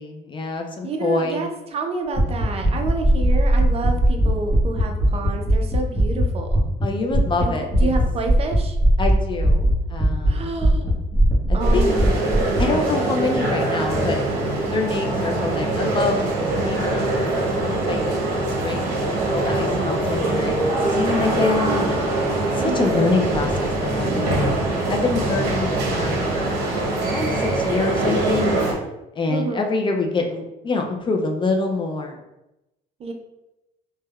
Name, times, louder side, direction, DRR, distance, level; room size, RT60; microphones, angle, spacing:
voice 1, 0.0-1.4 6.8-7.9 9.0-10.5 11.5-11.9 12.6-14.3 14.7-18.1 18.6-22.1 22.5-24.5 24.9-26.7 27.1-28.5 29.2-32.2, left 3 dB, 30° left, 3 dB, 0.3 m, -26 dB
voice 2, 0.8-6.6 7.4-7.5 7.8-8.8 10.3-10.9 11.5-13.0 22.6-23.1 29.3-29.7 33.0-33.1, right 3 dB, 35° right, 3 dB, 0.4 m, -29 dB
sound 1, 2.1-6.8 7.1-7.4 7.7-10.3 10.6-12.6, right 1 dB, 10° left, 0.8 m, -18 dB
sound 2, 11.6-28.7, right 2 dB, 70° right, 0.8 m, -23 dB
3.3 x 2.1 x 2.2 m, 0.93 s
cardioid pair, 110°, 17 cm